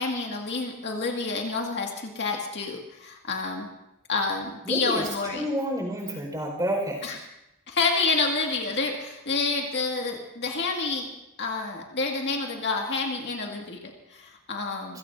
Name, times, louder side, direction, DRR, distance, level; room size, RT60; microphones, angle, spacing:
voice 1, 0.0-3.7 4.1-5.5 7.0-7.2 7.7-11.1 11.4-15.0, left 3 dB, 50° left, 1 dB, 2.0 m, -28 dB
voice 2, 4.6-5.1 5.3-7.0, equal, 15° right, 0 dB, 4.8 m, -29 dB
27.5 x 17.0 x 2.7 m, 0.89 s
head